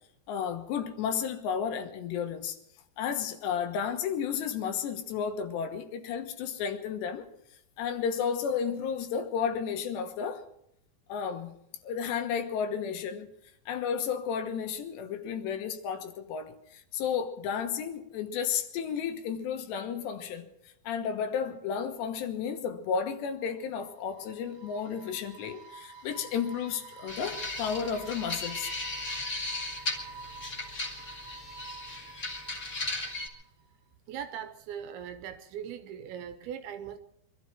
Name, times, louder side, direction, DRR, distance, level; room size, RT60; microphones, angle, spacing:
voice 1, 0.3-2.6 3.0-7.3 7.8-10.4 11.1-11.6 11.8-13.3 13.7-20.5 20.8-28.7, left 7 dB, 80° left, 3.4 m, -32 dB
sound 1, 23.5-33.6, right 4 dB, 50° right, 2.2 m, -49 dB
sound 2, 27.1-33.3, left 2 dB, 30° left, 1.7 m, -36 dB
voice 2, 34.1-37.0, right 9 dB, 75° right, 2.5 m, -40 dB
24.0 x 12.5 x 4.5 m
omnidirectional pair, 5.0 m